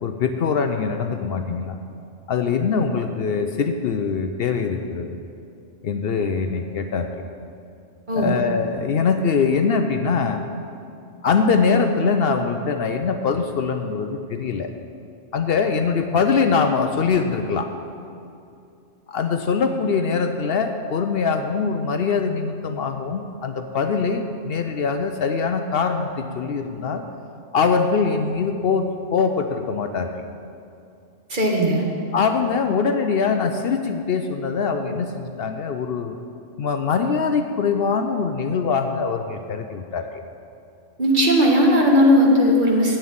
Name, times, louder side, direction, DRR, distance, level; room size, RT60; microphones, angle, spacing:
voice 1, 0.0-1.8 2.3-5.2 5.8-7.1 8.1-10.5 11.2-14.7 15.3-17.7 19.1-27.0 27.5-30.3 32.1-36.1 36.6-40.1, left 5 dB, 65° left, 6 dB, 0.8 m, -23 dB
voice 2, 8.1-8.4 31.3-31.9 41.0-43.0, equal, 45° right, -1 dB, 1.6 m, -17 dB
8.1 x 7.4 x 8.8 m, 2.5 s
omnidirectional pair, 1.2 m